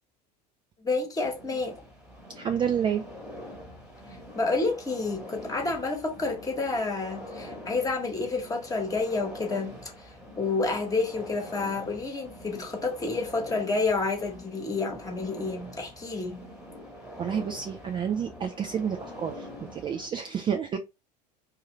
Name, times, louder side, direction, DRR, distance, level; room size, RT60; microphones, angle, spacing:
voice 1, 0.8-1.8 4.3-10.1 10.4-16.4, left 3 dB, 15° left, 1.2 m, -29 dB
sound 1, 1.2-20.1, equal, 5° right, 1.2 m, -44 dB
voice 2, 2.4-3.0 17.2-20.8, right 8 dB, 25° right, 0.4 m, -29 dB
2.7 x 2.5 x 3.1 m
figure-of-eight pair, 75°, 21 cm